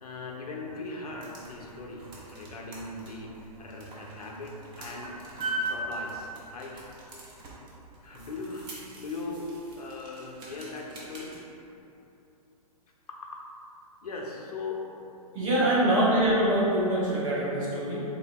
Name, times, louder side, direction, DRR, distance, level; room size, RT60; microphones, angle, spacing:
voice 1, 0.0-5.2 5.7-6.9 8.0-11.3 13.1-13.4 14.0-14.8 15.1-15.9, left 3 dB, 70° left, -1 dB, 0.6 m, -39 dB
sound 1, 0.9-11.4, right 2 dB, 25° right, 0.6 m, -41 dB
voice 2, 15.3-18.0, right 1 dB, 50° right, -8 dB, 1.2 m, -24 dB
3.6 x 3.5 x 2.2 m, 2.9 s
figure-of-eight pair, 120°, 20 cm